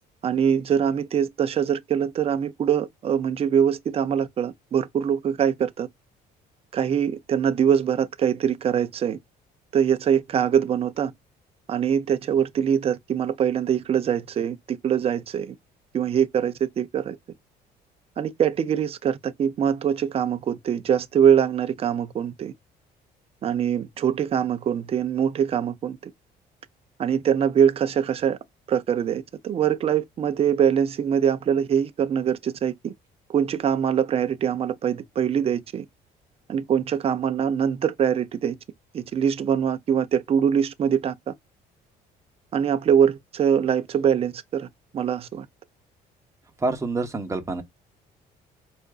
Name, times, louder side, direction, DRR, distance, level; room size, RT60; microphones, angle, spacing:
voice 1, 0.2-5.9 6.7-9.2 9.7-11.1 11.7-15.5 15.9-17.2 18.2-22.5 23.4-26.0 27.0-28.4 28.7-32.9 33.3-35.8 36.5-38.5 38.9-41.3 42.5-44.7 44.9-45.5, right 8 dB, 35° right, 0.5 m, -23 dB
voice 2, 46.6-47.6, right 3 dB, 15° right, 0.9 m, -27 dB
4.6 x 2.5 x 2.3 m
cardioid pair, 110°, 17 cm